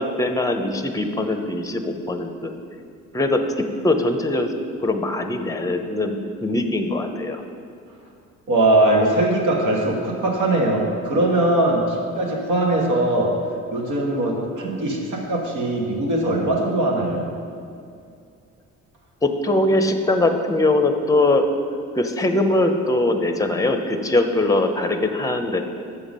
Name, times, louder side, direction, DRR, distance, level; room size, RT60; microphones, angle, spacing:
voice 1, 0.0-2.5 3.1-4.5 4.8-7.4 19.2-21.4 22.0-25.6, left 2 dB, 10° left, 7 dB, 0.7 m, -21 dB
voice 2, 8.5-13.3 13.7-17.3, right 1 dB, 80° right, -1 dB, 1.6 m, -21 dB
7.1 x 6.8 x 5.3 m, 2.4 s
cardioid pair, 90°, 30 cm